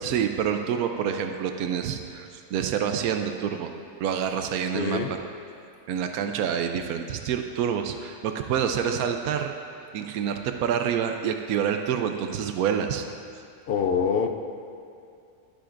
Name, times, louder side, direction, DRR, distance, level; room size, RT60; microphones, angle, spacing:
voice 1, 0.0-3.7 4.0-5.2 5.9-9.5 9.9-13.1, right 8 dB, 85° right, 5 dB, 1.1 m, -27 dB
voice 2, 4.7-5.1 13.7-14.4, left 6 dB, 55° left, 6 dB, 0.7 m, -25 dB
20.0 x 7.7 x 2.5 m, 2.5 s
omnidirectional pair, 1.5 m